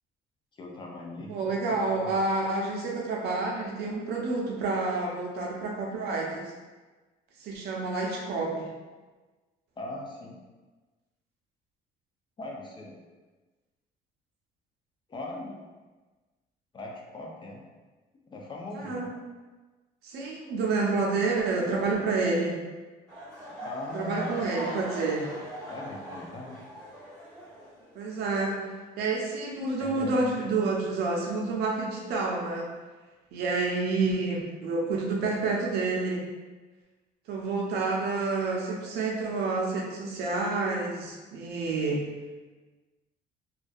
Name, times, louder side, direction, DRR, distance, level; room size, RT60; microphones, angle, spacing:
voice 1, 0.6-2.2 9.8-10.4 12.4-13.0 15.1-15.6 16.7-17.7 18.3-19.1 23.6-24.4 25.7-26.6 29.8-30.4, left 1 dB, 30° left, -1 dB, 0.4 m, -40 dB
voice 2, 1.3-6.5 7.4-8.7 18.7-19.1 20.0-22.6 23.9-25.3 27.9-28.6 29.0-32.7 33.3-36.2 37.3-42.1, right 3 dB, 75° right, -1 dB, 0.5 m, -29 dB
sound 1, 23.1-28.1 28.4-28.7 29.3-29.4, equal, 5° left, 1.2 m, -41 dB
2.5 x 2.3 x 2.3 m, 1.3 s
cardioid pair, 110°, 17 cm